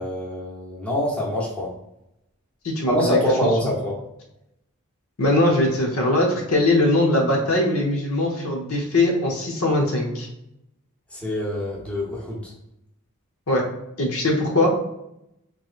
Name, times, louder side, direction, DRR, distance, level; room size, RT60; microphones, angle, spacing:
voice 1, 0.0-1.7 2.9-4.0 11.1-12.5, left 1 dB, 5° left, -5 dB, 0.9 m, -25 dB
voice 2, 2.6-3.2 3.6-3.7 5.2-10.3 13.5-13.6 14.0-14.7, left 1 dB, 75° left, 0 dB, 0.9 m, -21 dB
3.9 x 3.0 x 2.4 m, 0.83 s
head